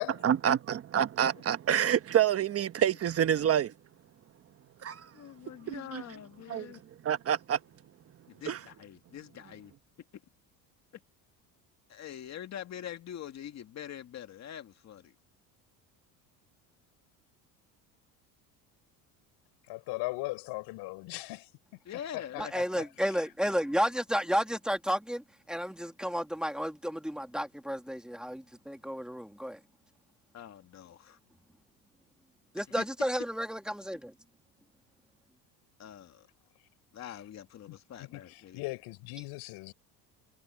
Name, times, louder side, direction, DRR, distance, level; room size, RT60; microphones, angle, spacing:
voice 1, 0.2-3.7 4.8-5.1 5.7-6.0 6.5-6.7 7.0-7.6 8.5-8.6, right 9 dB, 35° right, 1.2 m, -27 dB
voice 2, 5.1-6.8 8.3-9.7 11.9-15.1 21.8-22.5 30.3-31.2 32.8-32.9 35.8-36.3 36.9-38.7, left 10 dB, 45° left, 2.3 m, -44 dB
voice 3, 19.7-21.5 22.1-23.1 37.0-37.1 38.0-39.7, left 22 dB, 75° left, 4.4 m, -38 dB
voice 4, 22.4-29.6 32.5-34.1, equal, ahead, 2.5 m, -32 dB
cardioid pair, 130°, 39 cm